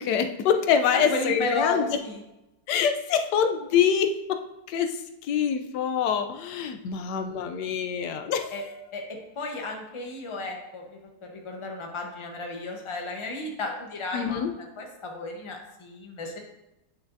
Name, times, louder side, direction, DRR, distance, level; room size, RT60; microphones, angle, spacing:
voice 1, 0.0-1.9 2.7-4.4 4.7-5.0 5.2-8.5 14.1-14.5, left 7 dB, 85° left, 7 dB, 1.2 m, -25 dB
voice 2, 0.9-2.2 8.5-8.6 8.9-9.0 9.4-16.4, left 2 dB, 25° left, 1 dB, 0.8 m, -33 dB
8.6 x 5.9 x 2.6 m, 0.93 s
omnidirectional pair, 1.8 m